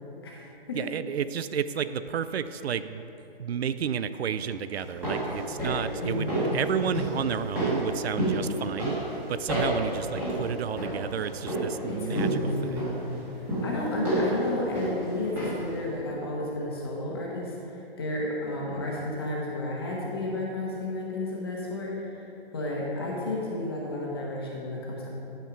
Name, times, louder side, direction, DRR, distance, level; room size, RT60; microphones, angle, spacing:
voice 1, 0.2-0.9 6.0-6.6 11.9-13.0 13.6-17.5 18.0-22.3 22.5-25.1, left 1 dB, 25° left, -3 dB, 1.1 m, -32 dB
voice 2, 0.7-3.0 3.4-6.3 6.5-12.9, right 8 dB, 80° right, 13 dB, 0.5 m, -31 dB
sound 1, 4.7-15.8 16.0-16.1, right 1 dB, 5° right, 1.3 m, -31 dB
11.5 x 4.6 x 6.0 m, 3.0 s
hypercardioid pair, 175°, 31 cm